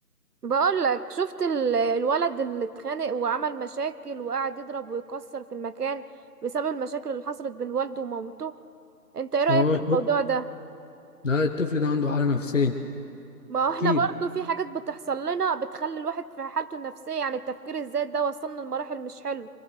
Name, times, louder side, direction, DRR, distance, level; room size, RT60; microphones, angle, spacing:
voice 1, 0.4-6.0 6.4-8.5 9.1-9.6 9.9-10.5 13.5-19.5, right 5 dB, 70° right, 15 dB, 1.0 m, -28 dB
voice 2, 9.5-10.0 11.2-12.8 13.8-14.0, left 4 dB, 50° left, 4 dB, 1.1 m, -24 dB
29.0 x 23.0 x 4.9 m, 2.8 s
figure-of-eight pair, 180°, 48 cm